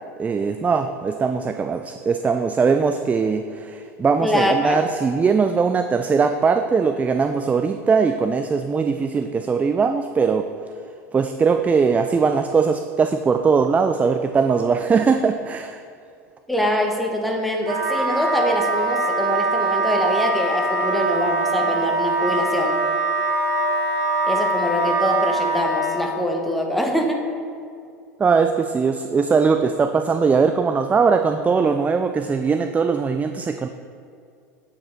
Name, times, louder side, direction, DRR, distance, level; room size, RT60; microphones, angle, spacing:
voice 1, 0.2-10.5 11.1-15.8 28.2-33.7, right 5 dB, 15° right, 8 dB, 0.3 m, -20 dB
voice 2, 4.2-4.8 16.5-22.8 24.2-27.2, left 1 dB, ahead, 1 dB, 1.1 m, -23 dB
Wind instrument woodwind instrument, 17.6-26.0, right 2 dB, 35° right, 1.9 m, -22 dB
8.4 x 5.0 x 4.5 m, 2.4 s
hypercardioid pair, 85°, 9 cm